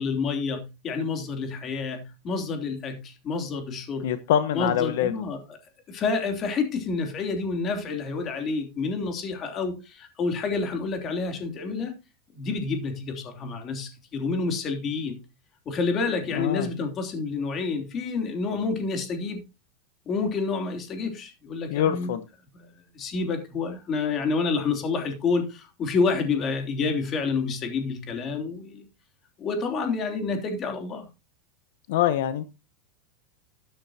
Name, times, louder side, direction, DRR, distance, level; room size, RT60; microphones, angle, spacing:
voice 1, 0.0-4.1 4.5-5.4 5.9-11.9 12.3-15.2 15.6-19.4 20.1-22.1 22.5-22.7 22.9-28.8 29.4-31.1, left 4 dB, 25° left, 3.1 m, -28 dB
voice 2, 4.0-5.1 16.3-16.7 21.7-22.2 31.9-32.5, left 10 dB, 70° left, 1.1 m, -24 dB
13.0 x 10.5 x 2.9 m
supercardioid pair, 160°, 0 cm